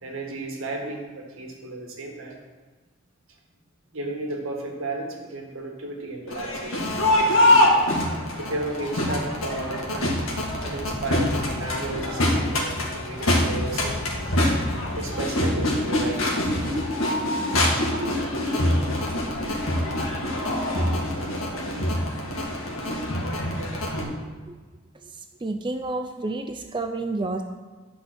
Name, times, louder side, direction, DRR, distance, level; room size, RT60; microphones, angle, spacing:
voice 1, 0.0-2.4 3.9-6.8 7.1-7.6 8.4-10.2 10.6-14.0 15.0-16.5 17.7-18.1, right 2 dB, 80° right, 1 dB, 1.8 m, -33 dB
Crowd, 6.3-24.0, left 1 dB, 90° left, 1.9 m, -24 dB
sound 1, 10.3-16.8, left 1 dB, 35° left, 1.3 m, -38 dB
voice 2, 25.0-27.4, right 2 dB, 25° right, 6 dB, 0.4 m, -30 dB
10.5 x 5.5 x 6.2 m, 1.4 s
head